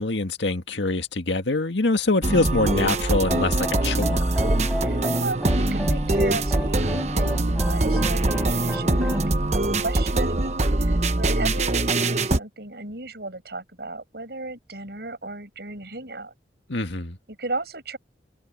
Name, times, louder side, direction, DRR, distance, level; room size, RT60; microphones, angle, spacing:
voice 1, 0.0-4.3 16.7-17.2, left 2 dB, 85° left, 1.9 m, -24 dB
sound 1, 2.2-12.4, right 2 dB, 40° right, 1.1 m, -23 dB
sound 2, 3.2-9.3, equal, ahead, 7.3 m, -32 dB
voice 2, 4.8-9.2 9.5-10.6 10.8-16.3 17.3-18.0, right 2 dB, 65° right, 7.1 m, -35 dB
head